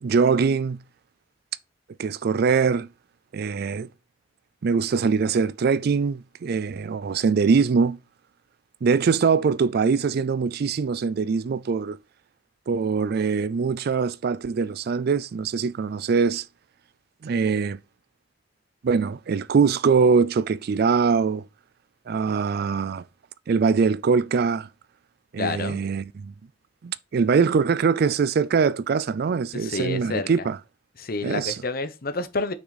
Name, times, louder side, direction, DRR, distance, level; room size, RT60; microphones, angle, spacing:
voice 1, 0.0-0.8 2.0-2.9 3.3-3.9 4.6-8.0 8.8-12.0 12.7-16.5 17.2-17.8 18.8-21.4 22.1-23.0 23.5-24.7 25.3-26.3 26.8-30.6 31.2-31.6, right 5 dB, 55° right, 0.4 m, -22 dB
voice 2, 25.4-25.8 29.5-30.3 31.0-32.5, left 3 dB, 50° left, 0.9 m, -29 dB
6.2 x 6.1 x 4.1 m
head